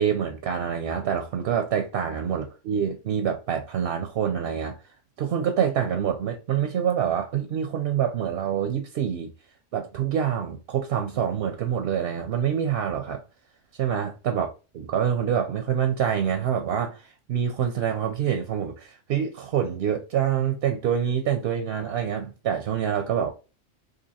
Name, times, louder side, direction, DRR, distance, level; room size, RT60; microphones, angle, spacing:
voice 1, 0.0-4.7 5.2-9.3 9.7-13.2 13.8-14.5 14.7-23.3, right 8 dB, 65° right, 0.7 m, -26 dB
2.8 x 2.7 x 4.0 m
omnidirectional pair, 1.3 m